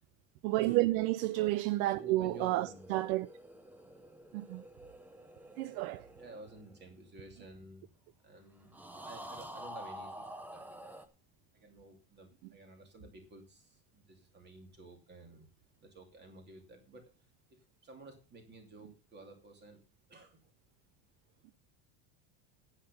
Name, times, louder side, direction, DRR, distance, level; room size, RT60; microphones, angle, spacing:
voice 1, 0.4-3.3 4.3-4.6 5.6-6.1, right 17 dB, 65° right, 0.6 m, -31 dB
voice 2, 1.8-2.9 6.2-7.8 8.2-11.0 11.5-15.5 15.8-19.8 20.1-20.4, right 2 dB, 25° right, 2.7 m, -53 dB
sound 1, 2.1-7.6 8.7-11.1, equal, 5° right, 0.6 m, -49 dB
9.9 x 9.1 x 5.3 m
cardioid pair, 170°, 44 cm